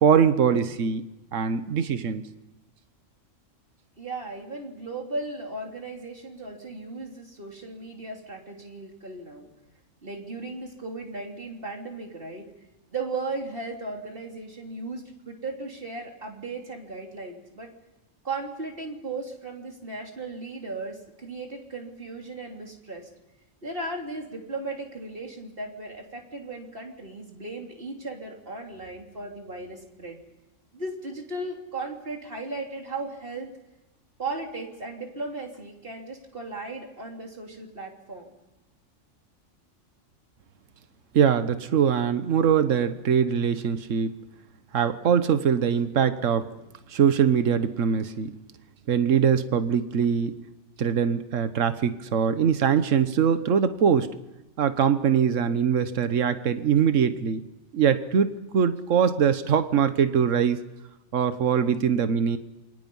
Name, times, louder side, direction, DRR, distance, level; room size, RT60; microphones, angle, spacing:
voice 1, 0.0-2.2 41.1-44.1 44.7-46.5 46.9-48.3 48.9-50.3 50.8-54.1 54.6-57.4 57.7-60.6 61.1-62.4, right 7 dB, 75° right, 11 dB, 1.4 m, -22 dB
voice 2, 4.0-9.5 10.0-12.5 12.9-17.7 18.2-23.1 23.6-30.2 30.7-33.5 34.2-38.3, right 3 dB, 45° right, 1 dB, 3.5 m, -36 dB
28.0 x 24.0 x 5.5 m, 1.0 s
omnidirectional pair, 1.3 m